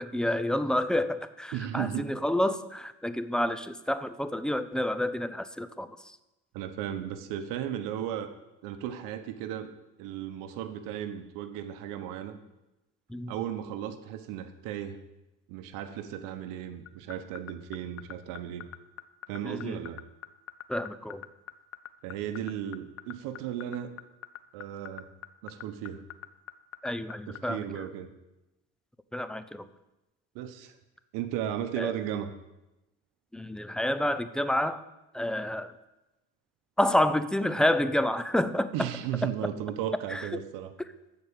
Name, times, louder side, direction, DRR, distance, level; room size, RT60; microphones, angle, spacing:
voice 1, 0.0-6.2 13.1-13.3 19.4-19.8 20.7-21.2 26.8-27.8 29.1-29.7 31.8-31.9 33.3-34.8 35.1-35.7 36.8-38.9 39.2-39.3 40.1-40.3 40.8-40.9, left 1 dB, ahead, 13 dB, 0.5 m, -29 dB
voice 2, 1.5-2.1 6.5-8.3 8.6-9.7 10.0-12.4 13.3-15.0 15.5-18.6 19.3-20.0 22.0-23.9 24.5-25.1 25.4-26.0 27.3-28.1 30.3-30.8 31.1-32.3 38.7-40.7, right 10 dB, 85° right, 9 dB, 1.1 m, -35 dB
sound 1, 16.9-27.4, left 13 dB, 45° left, 0.6 m, -41 dB
14.0 x 4.8 x 8.8 m, 0.98 s
cardioid pair, 130°, 32 cm